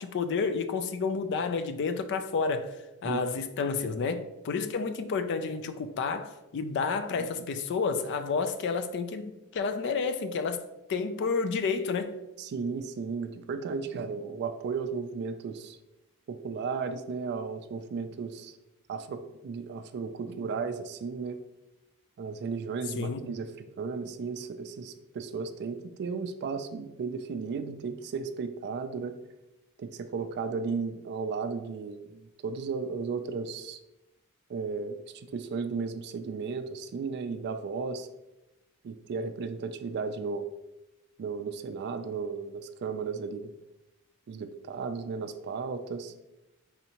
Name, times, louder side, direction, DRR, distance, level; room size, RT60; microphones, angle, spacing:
voice 1, 0.0-2.8 3.0-10.6 10.9-12.2 23.0-23.3, left 5 dB, 50° left, 0.3 m, -30 dB
voice 2, 12.4-15.8 16.3-18.6 18.9-21.4 22.2-29.1 29.8-33.8 34.5-38.1 38.8-40.5 41.2-43.5 44.3-46.1, right 5 dB, 50° right, 0.3 m, -35 dB
4.1 x 2.7 x 2.9 m
head